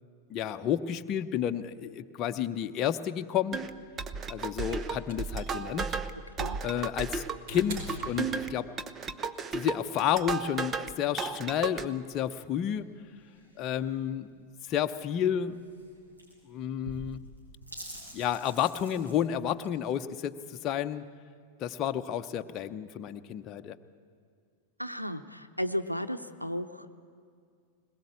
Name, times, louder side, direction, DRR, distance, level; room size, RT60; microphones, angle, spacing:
voice 1, 0.3-3.7 4.3-6.0 6.6-8.7 9.5-12.9 13.6-14.3 14.7-15.6 16.5-17.2 18.1-21.0 21.6-23.8, left 10 dB, 35° left, 8 dB, 0.8 m, -31 dB
sound 1, 3.5-10.9 11.2-11.8, right 5 dB, 25° right, 0.9 m, -34 dB
sound 2, 4.7-8.9 10.2-10.3, equal, 50° right, 4.9 m, -44 dB
sound 3, 11.8-19.7, equal, 85° right, 7.1 m, -49 dB
voice 2, 24.8-26.9, equal, 90° left, 8 dB, 0.7 m, -34 dB
21.0 x 21.0 x 8.5 m, 2.2 s
figure-of-eight pair, 90°, 0 cm